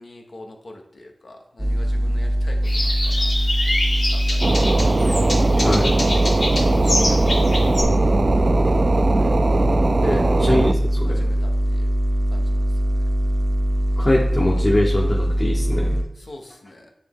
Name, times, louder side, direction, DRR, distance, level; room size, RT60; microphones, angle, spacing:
voice 1, 0.0-3.3 3.6-4.8 5.3-6.1 6.6-8.0 8.5-9.4 10.0-10.3 11.1-11.9 12.3-13.0 16.2-16.9, left 1 dB, 70° left, 2 dB, 1.0 m, -44 dB
sound 1, 1.6-16.0, equal, 5° right, 0.6 m, -21 dB
sound 2, 2.6-7.8, left 1 dB, 90° left, 1.7 m, -26 dB
sound 3, 4.4-10.7, right 3 dB, 65° right, 0.3 m, -21 dB
voice 2, 10.0-11.3 14.0-16.0, left 1 dB, 35° left, -2 dB, 1.1 m, -22 dB
9.5 x 3.2 x 3.6 m, 0.87 s
cardioid pair, 45°, 0 cm